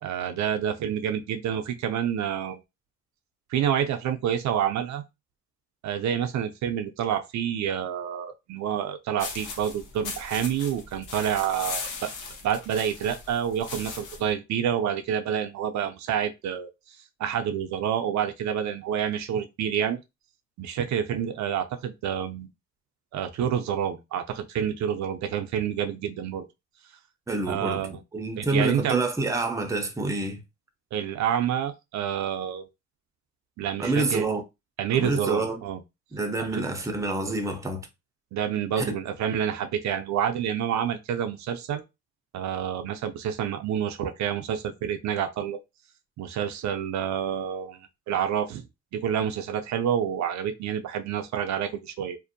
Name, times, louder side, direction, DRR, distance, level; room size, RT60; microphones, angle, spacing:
voice 1, 0.0-2.6 3.5-5.0 5.8-12.1 12.4-16.7 17.2-20.0 20.6-22.5 23.1-26.4 27.5-28.0 28.4-29.0 30.9-32.7 33.6-34.3 34.8-35.8 36.4-36.6 38.3-41.8 42.3-45.6 46.2-48.6 48.9-52.2, right 9 dB, 65° right, 0.5 m, -28 dB
sound 1, 9.2-14.3, left 4 dB, 80° left, 0.8 m, -38 dB
voice 2, 27.3-27.8 28.1-30.4 33.8-34.4 34.9-35.6 36.1-37.9 38.8-38.9, right 2 dB, 10° right, 0.5 m, -27 dB
2.5 x 2.0 x 2.6 m
cardioid pair, 90°, 30 cm